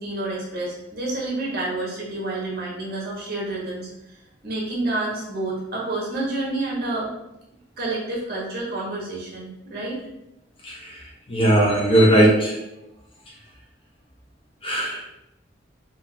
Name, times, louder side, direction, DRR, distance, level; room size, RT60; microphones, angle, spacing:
voice 1, 0.0-3.9 4.4-7.1 7.8-10.0, right 2 dB, 55° right, -5 dB, 1.4 m, -29 dB
voice 2, 11.3-12.5 14.6-15.1, right 1 dB, 30° left, -3 dB, 0.8 m, -18 dB
3.7 x 3.1 x 2.8 m, 0.91 s
head